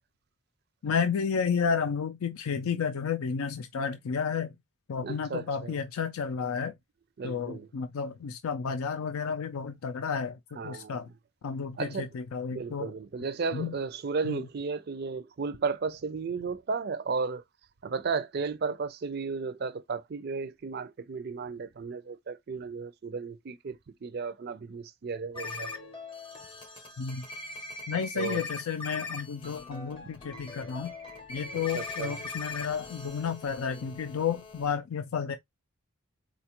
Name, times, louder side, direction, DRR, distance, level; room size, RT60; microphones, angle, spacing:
voice 1, 0.8-4.5 4.9-6.7 7.2-11.1 11.4-12.9 13.5-13.7 14.2-14.4 27.0-27.3 27.9-30.9 31.3-35.4, left 6 dB, 80° left, 0.4 m, -31 dB
voice 2, 5.0-5.8 7.2-7.7 10.6-11.1 11.8-12.1 12.5-17.4 17.8-25.7 28.2-28.4 30.0-30.1 31.7-32.2, right 4 dB, 45° right, 0.4 m, -34 dB
sound 1, 25.3-34.7, left 3 dB, 25° left, 0.6 m, -41 dB
4.1 x 2.3 x 2.9 m
head